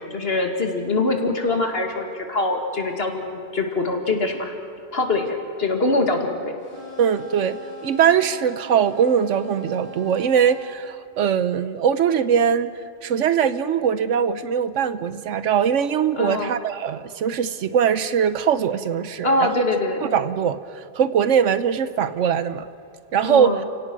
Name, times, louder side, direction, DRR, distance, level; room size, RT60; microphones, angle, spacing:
voice 1, 0.0-4.5 4.9-6.5 16.2-16.6 19.2-20.1 23.2-23.7, left 2 dB, 55° left, 4 dB, 2.4 m, -23 dB
sound 1, 6.6-10.7, right 2 dB, 50° right, 8.0 m, -41 dB
voice 2, 7.0-12.7 13.0-19.5 20.0-22.7 23.1-23.6, right 8 dB, 90° right, 13 dB, 1.2 m, -21 dB
30.0 x 17.0 x 6.2 m, 2.6 s
omnidirectional pair, 1.2 m